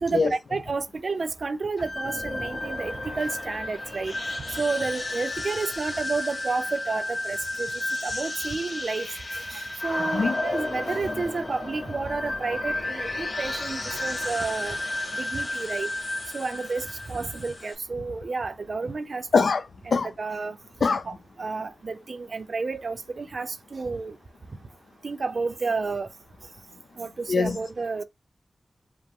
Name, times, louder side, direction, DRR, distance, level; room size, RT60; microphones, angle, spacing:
voice 1, 0.0-4.1 4.6-9.1 9.3-14.8 15.2-15.9 16.3-19.2 19.9-20.6 21.1-24.2 25.0-26.1 27.0-28.0, right 4 dB, 65° right, 0.6 m, -31 dB
sound 1, 1.8-17.7, left 2 dB, 55° left, 2.2 m, -32 dB
voice 2, 10.0-10.4 19.3-20.1 20.8-21.1 27.3-27.6, left 4 dB, 90° left, 0.4 m, -23 dB
5.0 x 2.1 x 3.6 m
wide cardioid pair, 70°, 0 cm